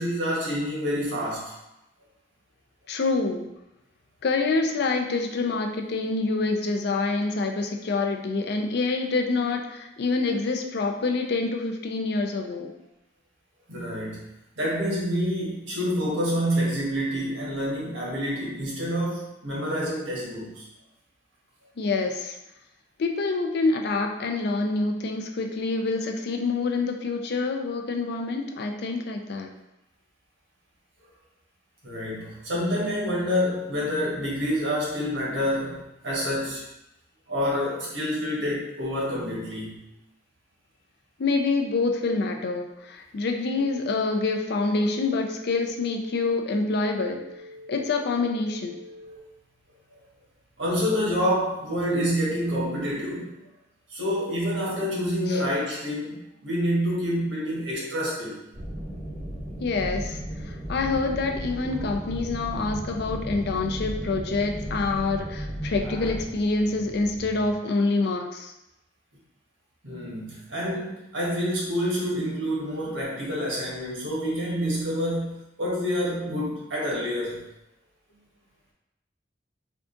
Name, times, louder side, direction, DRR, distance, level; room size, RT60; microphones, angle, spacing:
voice 1, 0.0-1.5 13.7-14.2 14.6-20.6 31.8-36.6 37.3-39.8 50.6-53.4 53.9-58.4 69.8-77.4, equal, 85° right, -4 dB, 1.3 m, -27 dB
voice 2, 2.9-3.5 4.2-12.7 21.8-22.4 23.0-29.5 41.2-47.2 47.7-48.8 55.3-55.5 59.6-68.5, left 3 dB, 60° left, 3 dB, 0.4 m, -26 dB
sound 1, 43.6-49.2, left 2 dB, 50° right, 1.2 m, -45 dB
sound 2, 58.5-66.3, equal, 20° right, 1.1 m, -35 dB
sound 3, 60.8-67.7, equal, 10° left, 0.7 m, -46 dB
3.6 x 2.4 x 3.7 m, 0.91 s
head